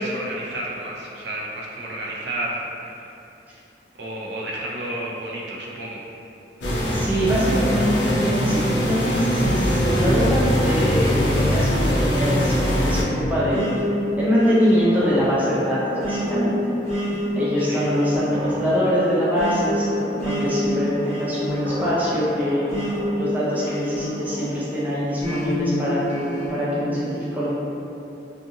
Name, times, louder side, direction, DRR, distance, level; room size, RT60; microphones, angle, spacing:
voice 1, 0.0-3.1 3.9-6.0 17.6-17.8, right 1 dB, 75° right, -3 dB, 0.5 m, -31 dB
sound 1, 6.6-13.0, equal, 85° left, 0.5 m, -21 dB
voice 2, 6.9-13.7 14.2-16.6 17.3-22.7 23.2-27.5, equal, 10° right, -8 dB, 0.4 m, -23 dB
sound 2, 13.5-24.6 25.2-26.7, left 1 dB, 40° left, 0.6 m, -28 dB
2.5 x 2.4 x 2.7 m, 2.8 s
head